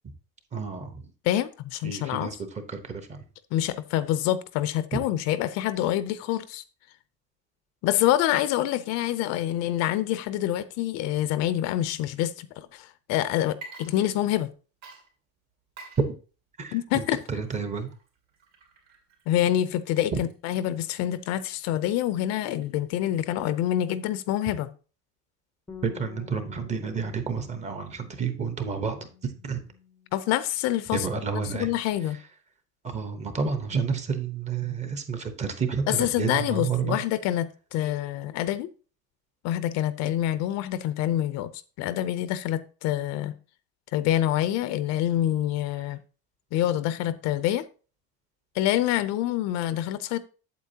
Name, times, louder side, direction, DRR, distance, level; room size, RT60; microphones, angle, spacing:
voice 1, 0.5-1.0 1.8-2.4 2.7-3.2 4.9-5.0 16.6-17.9 25.8-29.6 30.9-31.7 32.8-37.0, right 5 dB, 20° right, 0.9 m, -30 dB
voice 2, 1.2-2.3 3.5-6.6 7.8-14.5 16.7-17.2 19.3-24.7 30.1-31.1 31.5-32.2 35.9-38.7 39.4-41.5 41.8-43.3 43.9-46.0 46.5-47.6 48.5-50.2, left 12 dB, 55° left, 0.6 m, -26 dB
Water / Liquid, 13.5-14.5 14.8-23.0, right 3 dB, 55° right, 2.7 m, -51 dB
Bass guitar, 25.7-30.4 30.6-31.9, left 8 dB, 10° left, 0.6 m, -50 dB
8.3 x 8.0 x 2.8 m
cardioid pair, 175°, 32 cm